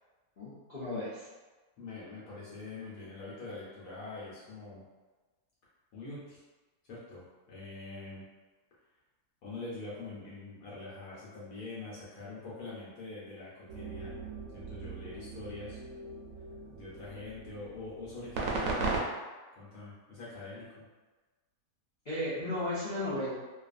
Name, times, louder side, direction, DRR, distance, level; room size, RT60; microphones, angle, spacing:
voice 1, 0.4-1.3 22.0-23.3, left 1 dB, 90° left, -11 dB, 0.4 m, -34 dB
voice 2, 1.8-4.8 5.9-6.4 6.9-8.2 9.4-14.1 14.5-15.8 16.7-19.0 19.6-20.8, left 3 dB, 70° left, -8 dB, 1.0 m, -44 dB
sound 1, 13.7-19.0, right 3 dB, 65° right, 0.8 m, -38 dB
2.5 x 2.4 x 2.4 m, 1.3 s
omnidirectional pair, 1.7 m